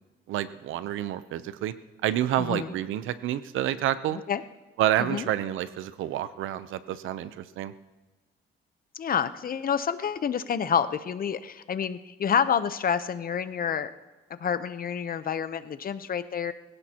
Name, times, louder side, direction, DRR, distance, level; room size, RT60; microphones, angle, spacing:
voice 1, 0.3-1.7 2.0-4.2 4.8-7.7, right 12 dB, 85° right, 14 dB, 0.7 m, -28 dB
voice 2, 2.4-2.7 4.1-4.4 5.0-5.3 8.9-13.9 14.4-16.5, left 7 dB, 45° left, 12 dB, 0.8 m, -28 dB
21.5 x 16.5 x 3.0 m, 1.2 s
cardioid pair, 90°, 20 cm